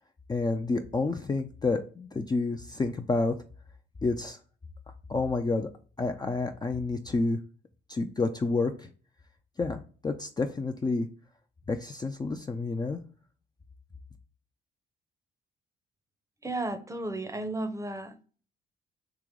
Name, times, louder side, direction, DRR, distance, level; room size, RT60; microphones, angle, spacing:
voice 1, 0.3-3.3 4.0-4.4 5.1-5.7 6.0-7.4 7.9-8.9 9.6-11.1 11.7-13.0, left 3 dB, 20° left, 0.4 m, -29 dB
voice 2, 16.4-18.2, right 2 dB, 15° right, 0.7 m, -34 dB
3.7 x 2.9 x 4.7 m
cardioid pair, 90°, 20 cm